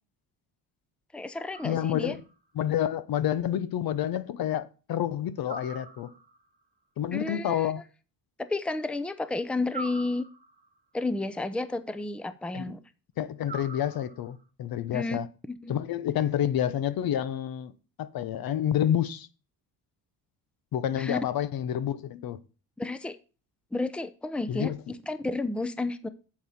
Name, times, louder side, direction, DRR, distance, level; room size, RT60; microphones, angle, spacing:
voice 1, 1.1-2.2 7.1-7.7 8.4-10.3 10.9-12.8 14.9-15.2 15.6-15.8 21.0-21.2 22.8-23.2 23.7-26.1, left 2 dB, 5° left, 0.6 m, -31 dB
sound 1, 1.5-2.4 5.5-6.5 9.7-10.8 13.4-14.4, right 3 dB, 20° right, 1.2 m, -43 dB
voice 2, 1.6-2.2 2.6-6.1 7.0-7.8 12.5-12.8 13.2-15.3 15.7-17.7 18.0-19.3 20.7-22.4 24.5-24.8, left 10 dB, 65° left, 0.9 m, -29 dB
8.6 x 7.7 x 4.3 m
cardioid pair, 115°, 38 cm